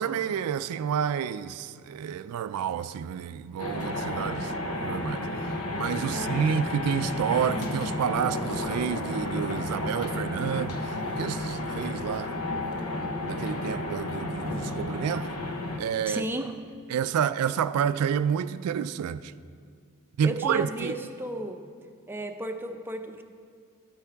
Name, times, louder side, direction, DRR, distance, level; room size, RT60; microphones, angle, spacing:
voice 1, 0.0-4.5 4.8-12.7 13.2-15.3 15.8-16.2 16.9-19.3 20.2-21.0, right 8 dB, 85° right, 0.3 m, -29 dB
sound 1, 3.6-15.8, left 1 dB, 80° left, 1.0 m, -32 dB
voice 2, 6.1-6.7 16.1-16.5 20.2-21.6 22.1-23.2, right 1 dB, 10° right, 0.5 m, -34 dB
13.0 x 8.3 x 3.4 m
head